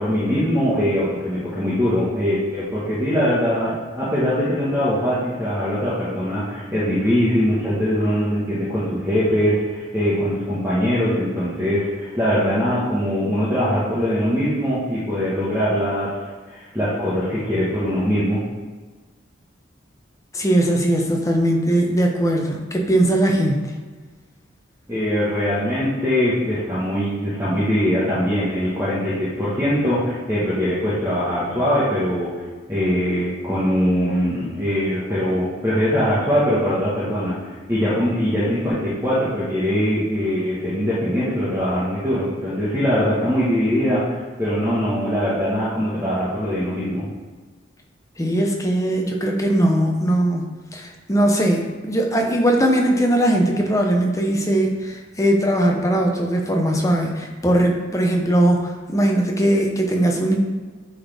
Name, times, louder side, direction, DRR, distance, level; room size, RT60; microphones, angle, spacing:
voice 1, 0.0-16.1 16.5-18.4 24.9-32.3 32.7-47.1, equal, 15° right, -10 dB, 1.3 m, -22 dB
voice 2, 20.3-23.6 48.2-50.4 50.7-60.3, right 1 dB, 15° left, 1 dB, 0.8 m, -19 dB
9.5 x 4.1 x 3.5 m, 1.4 s
head